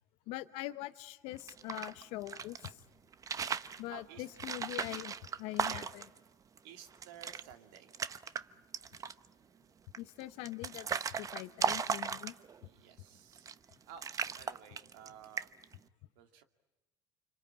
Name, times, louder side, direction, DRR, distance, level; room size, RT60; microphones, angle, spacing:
voice 1, 0.3-2.8 3.8-6.0 10.0-12.3, left 17 dB, 65° left, 12 dB, 0.9 m, -43 dB
sound 1, 1.4-2.7 3.1-3.8 4.4-6.2 6.6-6.7 6.9-7.4 7.7-8.4 8.7-9.3 9.9-12.6 13.3-13.7 14.0-15.1 15.4-15.7, right 6 dB, 30° right, 0.9 m, -37 dB
voice 2, 3.9-4.3 5.4-5.9 6.6-7.9 12.6-15.5 16.2-16.4, right 9 dB, 75° right, 7 dB, 2.2 m, -53 dB
26.5 x 25.0 x 8.8 m, 1.0 s
supercardioid pair, 90°, 11 cm